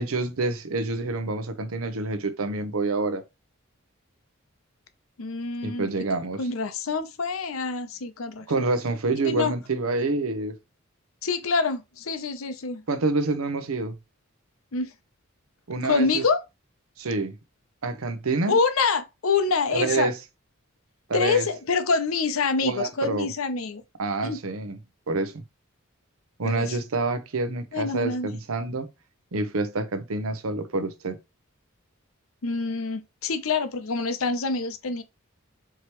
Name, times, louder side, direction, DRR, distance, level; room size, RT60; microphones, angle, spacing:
voice 1, 0.0-3.2 5.6-6.4 8.5-10.5 12.9-14.0 15.7-16.3 17.0-17.4 17.8-18.6 19.7-20.2 21.1-21.5 22.6-23.3 24.0-24.8 25.1-25.4 26.4-28.9 29.3-31.2, right 3 dB, 80° right, 0.7 m, -27 dB
voice 2, 5.2-8.5 9.2-9.5 11.2-12.8 14.7-14.9 15.8-16.4 18.5-20.1 21.1-23.8 24.2-24.4 26.4-26.8 27.7-28.3 32.4-35.0, left 4 dB, 75° left, 0.7 m, -26 dB
4.8 x 3.0 x 3.0 m
head